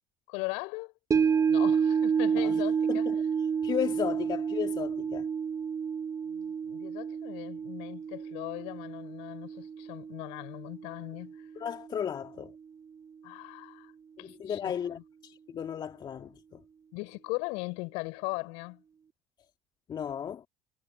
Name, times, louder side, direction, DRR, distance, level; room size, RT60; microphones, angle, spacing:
voice 1, 0.3-0.9 1.5-3.1 6.3-11.5 13.2-13.9 14.2-15.0 16.9-18.8, left 30 dB, 65° left, 6.1 m, -39 dB
sound 1, 1.1-11.5 11.8-11.9, right 6 dB, 30° right, 1.1 m, -30 dB
voice 2, 3.6-5.3 11.6-12.5 14.2-16.6 19.9-20.4, left 8 dB, 40° left, 2.2 m, -35 dB
figure-of-eight pair, 60°, 11 cm